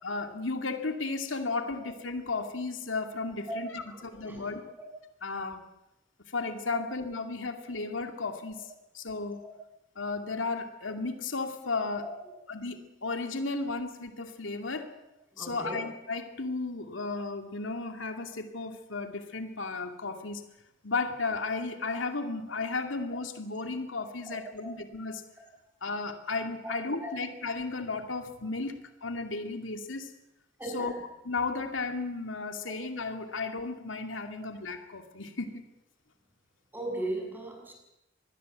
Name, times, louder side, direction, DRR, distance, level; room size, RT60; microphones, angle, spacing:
voice 1, 0.0-4.6 5.2-5.6 6.3-8.6 8.9-9.4 10.0-12.0 12.5-14.9 15.4-20.4 20.8-25.2 25.8-30.1 30.7-30.9 31.3-35.6, left 3 dB, 90° left, 6 dB, 2.4 m, -34 dB
voice 2, 3.9-4.4 15.3-15.8 24.3-24.4 27.0-27.1 30.6-30.9 36.7-37.7, right 1 dB, 10° right, 1 dB, 7.3 m, -37 dB
25.5 x 20.0 x 8.1 m, 0.87 s
head